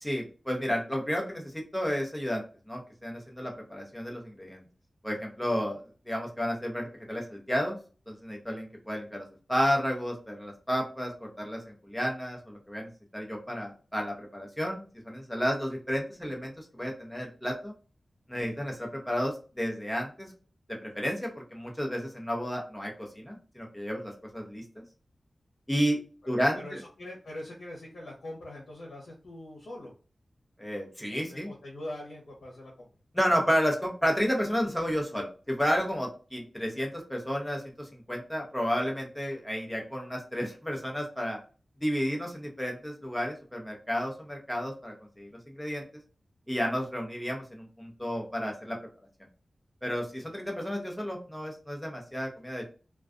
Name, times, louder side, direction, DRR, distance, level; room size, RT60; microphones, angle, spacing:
voice 1, 0.0-4.6 5.0-5.8 6.1-7.8 8.1-17.7 18.3-20.3 20.7-24.6 25.7-26.0 26.3-26.8 30.6-31.5 33.1-41.4 41.8-45.3 45.5-45.8 46.5-48.8 49.8-52.7, equal, 5° left, 0 dB, 0.7 m, -32 dB
voice 2, 26.3-29.9 31.1-32.9, left 1 dB, 85° left, -3 dB, 0.7 m, -43 dB
2.3 x 2.3 x 2.4 m, 0.36 s
wide cardioid pair, 100°, 0 cm